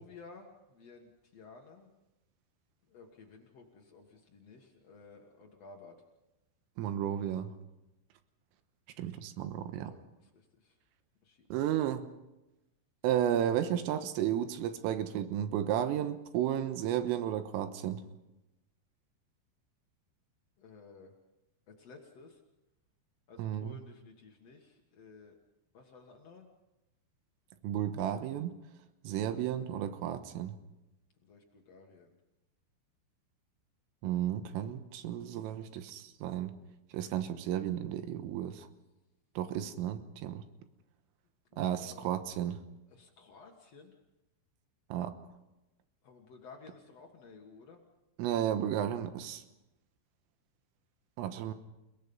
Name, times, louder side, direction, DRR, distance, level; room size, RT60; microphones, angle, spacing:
voice 1, 0.0-1.9 2.9-6.0 9.9-10.8 11.2-11.5 20.6-21.1 21.8-22.4 23.3-25.3 25.7-26.5 31.2-32.1 41.5-42.1 42.9-44.0 46.0-47.8, left 4 dB, 80° left, 1 dB, 1.4 m, -54 dB
voice 2, 6.8-7.5 9.0-9.9 11.5-12.1 13.0-18.0 23.4-23.8 27.6-28.5 29.0-30.6 34.0-36.5 36.9-38.7 39.4-40.4 41.6-42.6 44.9-45.2 48.2-49.4 51.2-51.5, right 10 dB, 85° right, 9 dB, 3.8 m, -33 dB
30.0 x 18.5 x 5.4 m, 0.99 s
omnidirectional pair, 5.8 m